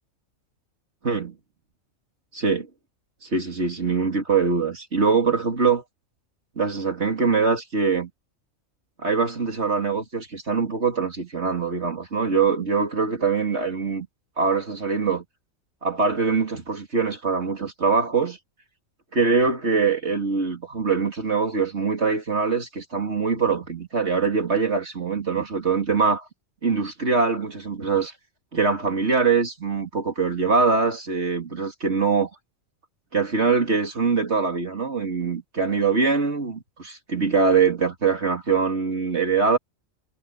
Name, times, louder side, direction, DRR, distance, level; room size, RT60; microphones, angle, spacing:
voice 1, 1.0-1.3 2.3-2.7 3.2-5.8 6.6-8.1 9.0-14.1 14.4-15.2 15.8-18.4 19.1-26.3 26.6-28.1 28.5-32.3 33.1-39.6, right 5 dB, 55° right, 3.0 m, -23 dB
omnidirectional pair, 1.4 m